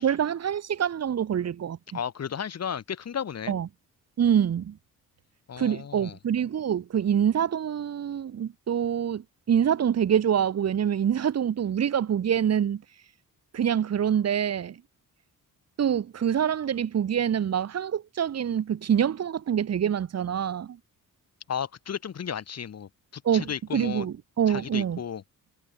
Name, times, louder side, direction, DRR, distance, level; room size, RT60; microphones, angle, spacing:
voice 1, 0.0-1.8 3.5-3.7 4.2-4.8 5.6-12.8 13.5-14.8 15.8-20.8 23.2-25.0, right 9 dB, 50° right, 1.9 m, -25 dB
voice 2, 1.9-3.6 5.5-6.2 21.5-24.1 24.5-25.2, left 8 dB, 50° left, 4.7 m, -34 dB
cardioid pair, 135°, 33 cm